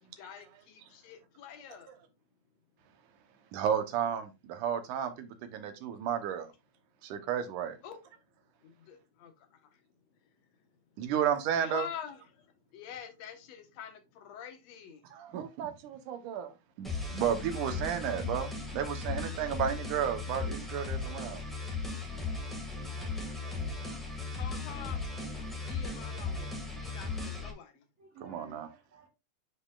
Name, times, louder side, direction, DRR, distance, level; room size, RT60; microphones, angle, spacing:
voice 1, 0.0-1.9 7.8-8.0 8.6-9.8 10.2-10.4 11.0-11.1 11.5-15.0 19.4-19.6 24.3-25.0 25.5-27.9, left 8 dB, 65° left, 2.2 m, -46 dB
voice 2, 3.5-6.5 7.0-7.8 11.0-11.9 15.1-21.4 22.9-23.2 28.2-28.7, right 8 dB, 80° right, 2.4 m, -33 dB
sound 1, 16.8-27.5, left 3 dB, ahead, 0.6 m, -37 dB
voice 3, 24.6-25.4 28.0-29.1, right 3 dB, 40° right, 3.2 m, -56 dB
9.6 x 5.0 x 2.4 m
omnidirectional pair, 3.6 m